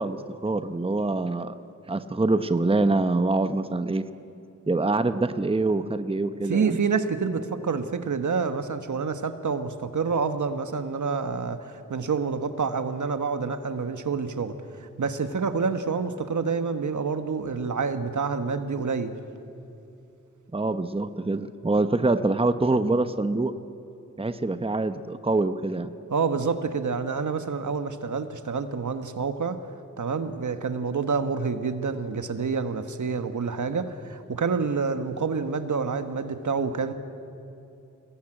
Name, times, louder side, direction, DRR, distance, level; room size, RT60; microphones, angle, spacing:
voice 1, 0.0-1.6 1.9-4.1 4.7-6.8 20.5-23.5 24.2-25.9, right 2 dB, 20° right, 11 dB, 0.9 m, -25 dB
voice 2, 6.5-19.1 26.1-29.6 30.0-36.9, right 5 dB, 70° right, 9 dB, 1.3 m, -28 dB
22.5 x 18.5 x 8.9 m, 2.7 s
cardioid pair, 55°, 31 cm